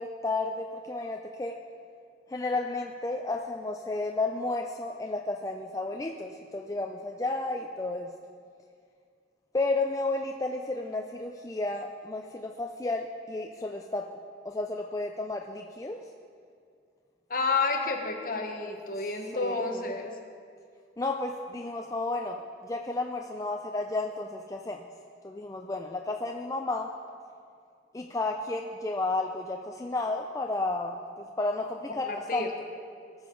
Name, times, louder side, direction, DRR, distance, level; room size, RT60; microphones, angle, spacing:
voice 1, 0.0-1.6 2.3-8.1 9.5-14.1 14.4-16.0 19.3-19.9 21.0-24.9 25.2-26.9 27.9-32.4, left 2 dB, 15° left, 2 dB, 0.4 m, -32 dB
voice 2, 17.3-20.1 32.1-32.5, left 3 dB, 45° left, 2 dB, 1.2 m, -30 dB
19.0 x 6.8 x 3.8 m, 2.3 s
head